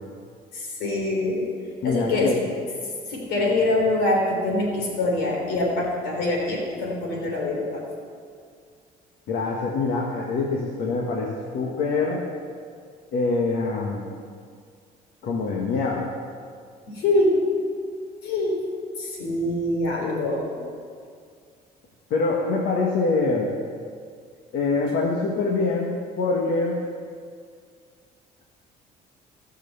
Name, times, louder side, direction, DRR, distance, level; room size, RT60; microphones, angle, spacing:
voice 1, 0.5-1.5 1.8-2.4 3.0-7.8 16.9-17.4 18.2-18.6 19.0-20.5, left 2 dB, 90° left, -1 dB, 3.6 m, -24 dB
voice 2, 1.8-2.4 9.3-12.2 13.1-14.1 15.2-16.1 22.1-23.5 24.5-26.8, left 3 dB, 70° left, -1 dB, 1.6 m, -24 dB
17.5 x 6.7 x 7.0 m, 2.1 s
cardioid pair, 110°, 17 cm